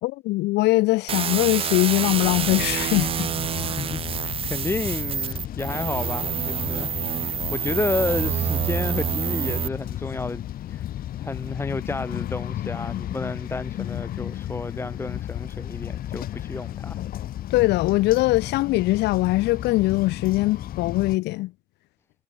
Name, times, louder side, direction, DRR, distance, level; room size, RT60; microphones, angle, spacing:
voice 1, 0.0-3.3 17.5-21.5, left 19 dB, 85° left, 1.3 m, -22 dB
sound 1, 1.1-9.7, right 8 dB, 35° right, 0.5 m, -27 dB
Inside train quiet area, 2.0-21.2, left 12 dB, 60° left, 1.5 m, -34 dB
voice 2, 3.6-6.9 7.2-10.4 10.7-10.9 11.2-17.0, left 3 dB, 15° left, 0.9 m, -31 dB
cardioid pair, 110°, 17 cm